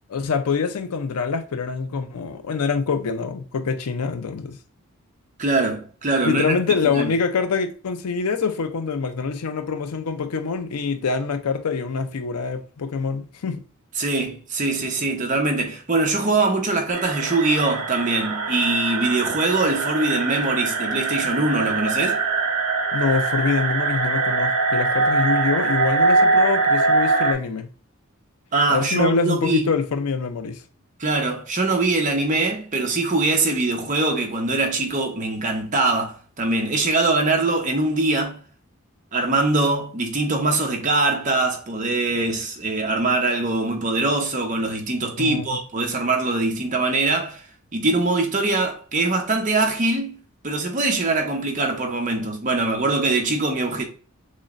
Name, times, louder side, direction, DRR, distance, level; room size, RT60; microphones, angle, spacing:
voice 1, 0.1-4.6 6.2-13.6 22.9-27.7 28.7-30.6 45.2-45.6, left 5 dB, 90° left, 0.5 m, -25 dB
voice 2, 5.4-6.6 6.8-7.1 14.0-22.2 28.5-29.7 31.0-38.4 39.1-47.4 47.7-50.2 50.4-53.8, right 2 dB, 35° right, 0.8 m, -22 dB
sound 1, 16.9-27.3, right 3 dB, 80° right, 0.9 m, -22 dB
6.2 x 2.1 x 2.4 m
head